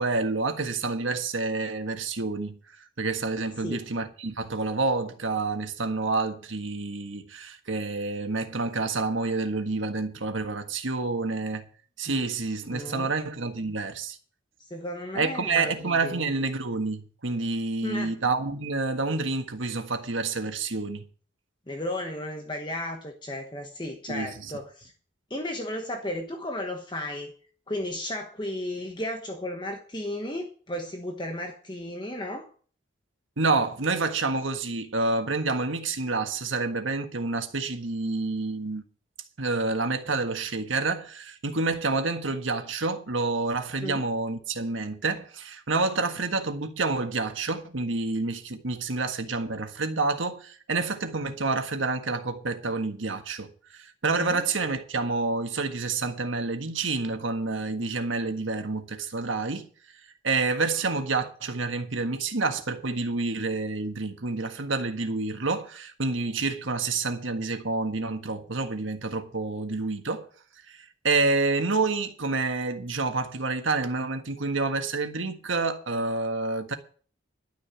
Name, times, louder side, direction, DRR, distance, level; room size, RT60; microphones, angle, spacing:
voice 1, 0.0-2.6 3.0-11.7 12.0-14.2 15.1-21.0 24.1-24.5 33.4-38.8 39.4-59.7 60.2-70.3 70.7-76.7, right 3 dB, 85° right, 1.6 m, -28 dB
voice 2, 12.7-13.1 14.6-16.3 17.8-18.1 21.7-24.9 25.3-27.3 27.7-32.5 43.8-44.1 54.1-54.5, left 1 dB, 25° left, 1.2 m, -34 dB
12.0 x 6.4 x 8.8 m
head